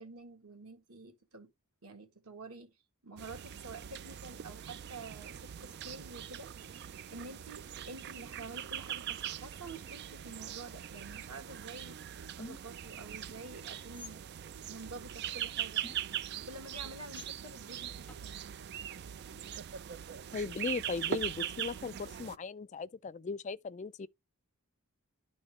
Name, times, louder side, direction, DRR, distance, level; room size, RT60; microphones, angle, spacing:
voice 1, 0.0-1.5 1.8-2.7 3.0-6.5 7.1-12.0 12.4-14.2 14.6-15.9 16.5-18.5, right 3 dB, 90° right, 2.0 m, -48 dB
sound 1, 3.2-22.4, right 9 dB, 50° right, 0.3 m, -41 dB
sound 2, 12.4-12.8 13.9-14.2 15.8-16.3 17.1-17.3 18.1-18.2, left 2 dB, 5° left, 1.2 m, -48 dB
voice 2, 20.3-24.1, left 4 dB, 35° left, 0.4 m, -38 dB
11.5 x 4.3 x 3.2 m
head